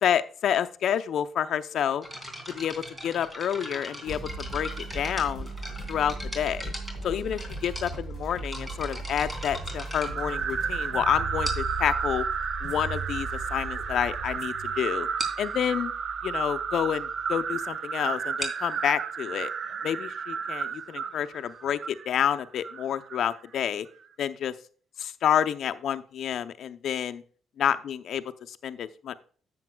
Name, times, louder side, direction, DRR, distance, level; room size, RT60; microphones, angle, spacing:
voice 1, 0.0-2.1 2.5-5.5 5.9-6.7 7.0-7.7 8.2-12.2 12.6-15.1 15.4-15.9 16.2-19.5 19.8-23.9 24.2-24.5 25.0-27.2 27.6-29.2, left 9 dB, 70° left, 10 dB, 0.6 m, -29 dB
sound 1, 2.0-10.8 11.4-11.9 12.7-12.8 13.4-13.5 13.8-14.0 14.3-14.4 14.7-14.8 15.2-15.5 18.2-21.6, equal, 15° right, 3.1 m, -40 dB
sound 2, 4.1-17.5, right 2 dB, 40° right, 4.4 m, -38 dB
sound 3, 10.0-23.4, right 6 dB, 55° right, 0.6 m, -32 dB
10.5 x 8.5 x 2.3 m, 0.43 s
cardioid pair, 90°, 0 cm